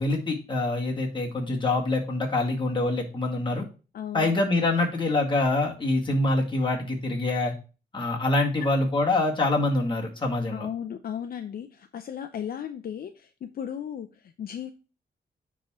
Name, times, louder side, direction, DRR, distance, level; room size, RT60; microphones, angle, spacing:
voice 1, 0.0-3.6 4.1-7.5 7.9-10.7, left 2 dB, 30° left, 0 dB, 1.9 m, -25 dB
voice 2, 3.9-4.3 10.5-14.7, left 9 dB, 60° left, 7 dB, 0.6 m, -35 dB
9.6 x 3.7 x 4.2 m, 0.34 s
cardioid pair, 115°, 17 cm